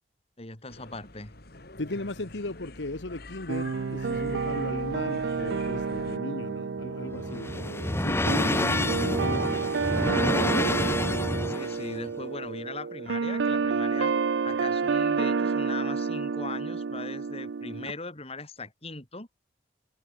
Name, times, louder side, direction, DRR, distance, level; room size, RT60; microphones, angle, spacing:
voice 1, 0.4-1.3 11.5-14.1 14.4-19.3, left 3 dB, 35° left, 4.9 m, -39 dB
sound 1, 0.7-6.2, left 2 dB, 60° left, 2.8 m, -45 dB
voice 2, 1.8-9.7 10.1-10.8 14.6-14.7, left 2 dB, 85° left, 1.6 m, -37 dB
sound 2, 3.5-17.9, right 5 dB, 80° right, 0.5 m, -29 dB
sound 3, 6.7-11.9, left 1 dB, 15° left, 0.9 m, -28 dB
head